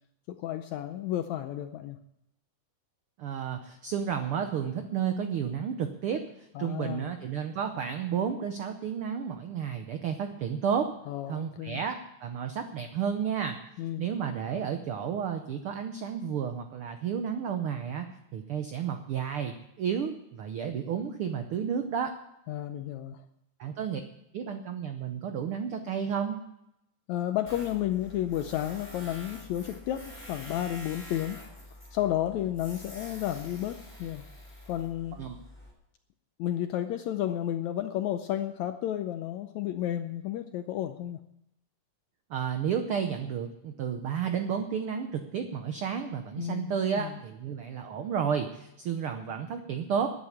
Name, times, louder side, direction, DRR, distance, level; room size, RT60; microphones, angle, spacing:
voice 1, 0.3-2.0 6.6-7.1 11.1-11.8 13.8-14.1 22.5-23.2 27.1-31.4 31.9-34.2 34.7-35.2 36.4-41.2 46.4-46.7 47.0-47.1, left 12 dB, 75° left, 8 dB, 1.8 m, -32 dB
voice 2, 3.2-10.9 11.3-13.6 14.0-18.1 18.3-22.1 23.6-24.0 24.3-26.4 35.2-35.4 42.3-50.1, right 7 dB, 80° right, 7 dB, 1.2 m, -32 dB
Tools, 27.5-35.7, left 1 dB, 5° left, 5.1 m, -47 dB
11.5 x 9.5 x 8.4 m, 0.82 s
omnidirectional pair, 3.7 m